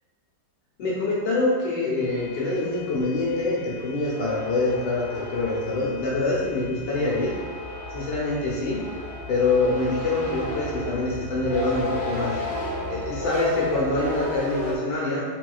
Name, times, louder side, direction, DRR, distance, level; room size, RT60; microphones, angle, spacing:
voice 1, 0.8-7.3 7.9-8.8 9.3-12.4 12.9-15.2, left 2 dB, 70° left, -5 dB, 1.2 m, -25 dB
sound 1, 2.0-14.8, equal, 70° right, 1.5 m, -34 dB
4.1 x 2.2 x 2.3 m, 1.5 s
omnidirectional pair, 2.0 m